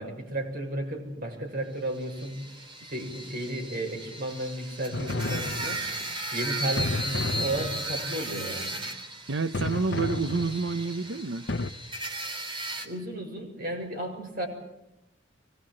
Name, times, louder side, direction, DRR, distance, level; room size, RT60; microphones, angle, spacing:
voice 1, 0.0-2.4 2.8-5.8 6.3-8.8 12.8-14.5, right 1 dB, 50° right, 2 dB, 6.6 m, -33 dB
sound 1, 1.9-12.9, right 1 dB, 30° right, 3.2 m, -36 dB
sound 2, 4.9-6.1 6.8-8.1 9.5-10.9 11.5-11.7, left 2 dB, 65° left, 0.9 m, -32 dB
voice 2, 9.3-11.5, right 4 dB, 80° right, 11 dB, 0.8 m, -29 dB
24.0 x 20.5 x 7.7 m, 0.91 s
head